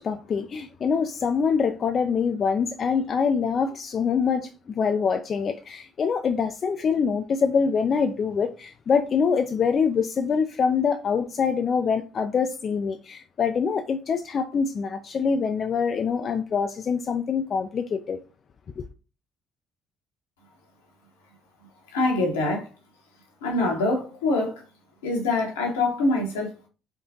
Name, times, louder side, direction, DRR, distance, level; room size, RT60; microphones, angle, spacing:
voice 1, 0.0-18.2 18.8-18.9, left 6 dB, 45° left, 0.3 m, -25 dB
voice 2, 21.9-22.7 23.4-24.6 25.0-26.7, left 2 dB, 80° left, 1.0 m, -24 dB
3.8 x 3.6 x 2.7 m
figure-of-eight pair, 50°, 0 cm